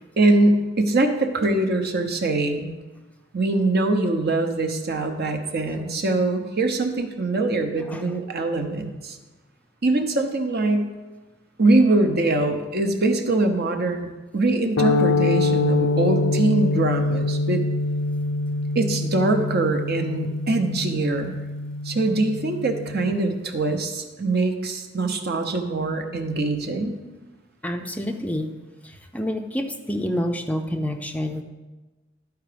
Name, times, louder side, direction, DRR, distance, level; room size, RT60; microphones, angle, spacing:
voice 1, 0.2-2.8 3.3-9.2 9.8-10.9 11.6-14.1 14.3-17.6 18.7-21.4 21.8-27.0, right 2 dB, 55° right, 6 dB, 0.9 m, -23 dB
sound 1, 14.8-23.1, left 3 dB, 65° left, 0.5 m, -25 dB
voice 2, 27.6-28.5 28.8-31.4, equal, 5° left, 5 dB, 0.4 m, -28 dB
12.5 x 4.7 x 5.1 m, 1.2 s
head